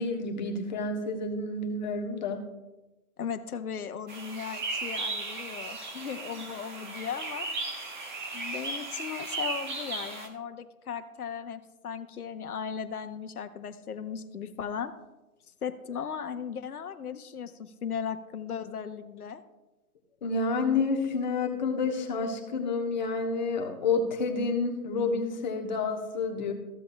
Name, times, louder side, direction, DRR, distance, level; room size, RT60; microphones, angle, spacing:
voice 1, 0.0-2.5 20.2-26.5, left 4 dB, 30° left, 2 dB, 1.1 m, -29 dB
voice 2, 3.2-7.5 8.3-14.9 15.6-19.4, left 7 dB, 85° left, 8 dB, 1.0 m, -37 dB
sound 1, 4.1-10.3, right 3 dB, 35° right, 1.0 m, -36 dB
14.5 x 7.7 x 2.2 m, 1.0 s
hypercardioid pair, 160°, 43 cm